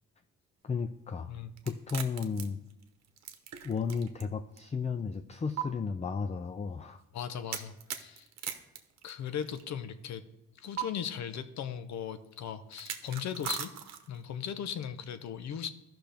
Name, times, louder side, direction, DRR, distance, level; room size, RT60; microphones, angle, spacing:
voice 1, 0.6-1.3 1.7-2.6 3.6-7.0, left 5 dB, 20° left, 8 dB, 0.5 m, -34 dB
sound 1, 1.6-4.2 4.6-4.7 5.6-5.7 7.5-9.6 10.8-10.9 12.7-14.2, right 10 dB, 60° right, 1.0 m, -39 dB
voice 2, 7.1-8.5 9.0-10.2 10.6-13.7 14.1-15.7, left 8 dB, 65° left, 11 dB, 0.8 m, -38 dB
14.0 x 6.0 x 3.4 m, 0.90 s
cardioid pair, 90°, 30 cm